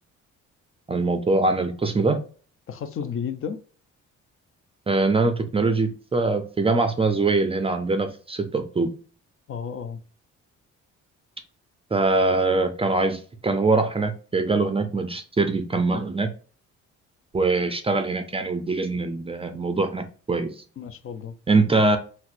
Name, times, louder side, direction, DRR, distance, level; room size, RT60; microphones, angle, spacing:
voice 1, 0.9-2.2 4.9-8.9 11.9-16.3 17.3-20.5 21.5-22.0, right 3 dB, 20° right, 0.4 m, -23 dB
voice 2, 2.7-3.6 9.5-10.0 20.8-21.3, left 7 dB, 45° left, 0.5 m, -32 dB
4.1 x 2.0 x 2.5 m
cardioid pair, 90°, 30 cm